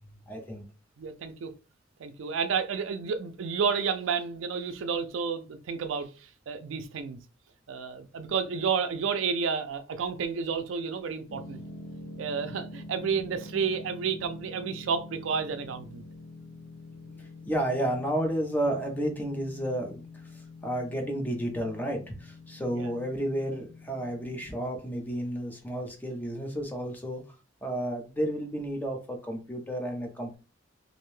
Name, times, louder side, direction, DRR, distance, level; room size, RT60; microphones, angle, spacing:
voice 1, 0.3-0.6 17.2-20.0 20.6-27.2 27.6-30.4, right 1 dB, 10° left, 0.5 m, -31 dB
voice 2, 1.0-1.5 2.0-6.1 6.5-7.2 7.7-11.6 12.2-16.0 22.7-22.9, right 6 dB, 85° right, 0.4 m, -31 dB
sound 1, 11.3-24.5, left 2 dB, 80° left, 0.6 m, -46 dB
2.6 x 2.1 x 3.0 m
head